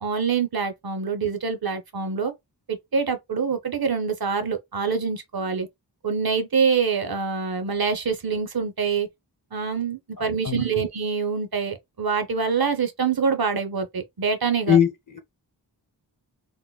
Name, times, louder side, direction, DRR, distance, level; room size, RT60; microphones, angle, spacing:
voice 1, 0.0-2.3 2.7-5.7 6.0-9.1 9.5-14.8, right 5 dB, 55° right, 0.6 m, -25 dB
voice 2, 10.2-10.6 14.7-14.9 15.1-15.2, left 8 dB, 45° left, 0.8 m, -20 dB
3.6 x 2.2 x 2.2 m
wide cardioid pair, 50°, 43 cm